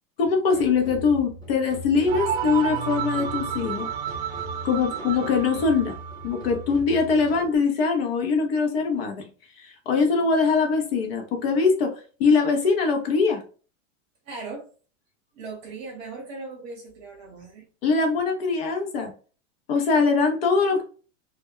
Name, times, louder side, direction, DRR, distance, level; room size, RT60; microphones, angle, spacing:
voice 1, 0.2-3.9 4.6-6.0 6.2-9.2 9.6-11.9 12.2-13.4 17.8-19.1 19.7-20.8, left 4 dB, 50° left, 3 dB, 0.6 m, -22 dB
sound 1, 0.5-7.6, right 1 dB, 10° left, 0.7 m, -40 dB
sound 2, 2.1-6.7, right 8 dB, 55° right, 0.5 m, -31 dB
voice 2, 14.2-14.7 15.3-17.7, right 3 dB, 30° right, 0 dB, 0.8 m, -38 dB
2.2 x 2.1 x 3.6 m, 0.38 s
supercardioid pair, 170°, 39 cm